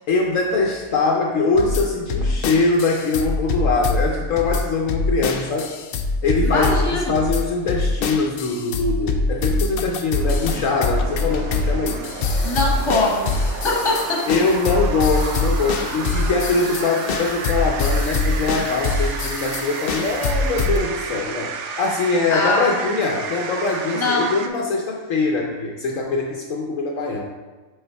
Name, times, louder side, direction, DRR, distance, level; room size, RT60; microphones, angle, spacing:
voice 1, 0.1-5.7 6.2-12.0 14.3-27.2, left 3 dB, 70° left, 0 dB, 1.0 m, -22 dB
sound 1, 1.6-20.8, left 3 dB, 85° left, 0.5 m, -24 dB
voice 2, 6.4-7.1 12.4-13.3 13.6-14.2 22.3-22.7 23.9-24.3, left 2 dB, 20° left, -3 dB, 1.2 m, -21 dB
sound 2, 10.1-24.5, right 5 dB, 65° right, 0.8 m, -32 dB
5.5 x 4.0 x 4.4 m, 1.2 s
omnidirectional pair, 1.5 m